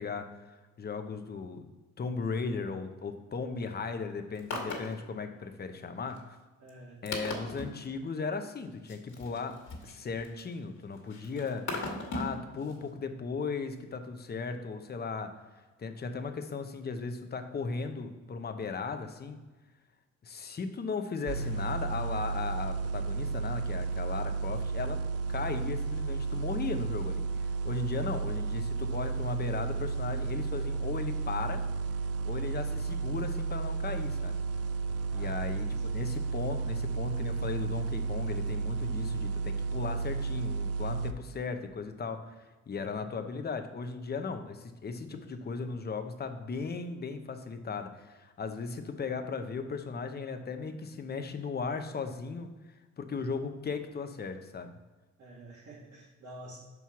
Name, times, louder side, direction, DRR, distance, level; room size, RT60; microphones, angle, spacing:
voice 1, 0.0-1.7 2.0-6.4 7.0-9.6 9.8-11.7 12.1-15.3 15.8-19.4 20.2-25.0 25.3-31.6 32.2-34.4 35.1-52.5 53.0-54.7, left 4 dB, 35° left, 7 dB, 0.8 m, -37 dB
sound 1, 4.3-4.9 5.4-5.5 6.1-6.2 6.7-6.8 7.1-7.7 8.9-10.5 11.0-12.4 12.7-12.8, left 3 dB, 65° left, 1.8 m, -37 dB
voice 2, 6.6-7.0 27.9-28.2 35.1-36.0 37.2-37.4 42.9-43.1 45.1-45.2 48.6-48.7 53.2-53.3 55.2-56.6, right 1 dB, 70° right, -8 dB, 2.1 m, -50 dB
sound 2, 21.3-41.1, right 4 dB, 55° right, 0.5 m, -33 dB
5.5 x 4.7 x 5.7 m, 1.2 s
cardioid pair, 90°, 30 cm